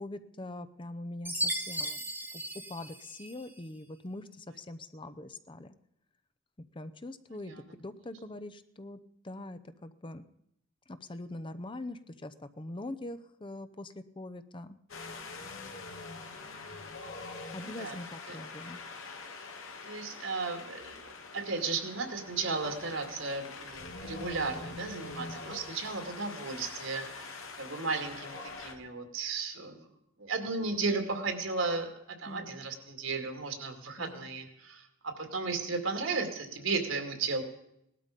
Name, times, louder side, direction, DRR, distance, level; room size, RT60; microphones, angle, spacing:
voice 1, 0.0-2.1 2.7-5.7 6.7-10.2 10.9-14.8 17.5-18.8 32.3-32.6 34.0-34.3, left 2 dB, 25° left, 11 dB, 0.7 m, -43 dB
Chime, 1.2-3.6, right 1 dB, 10° right, 1.4 m, -36 dB
Wind, 14.9-28.7, left 3 dB, 90° left, 2.3 m, -44 dB
voice 2, 17.6-18.0 18.3-18.4 19.9-29.9 30.2-37.4, right 4 dB, 70° right, 5 dB, 2.5 m, -35 dB
18.5 x 12.5 x 5.2 m, 0.77 s
head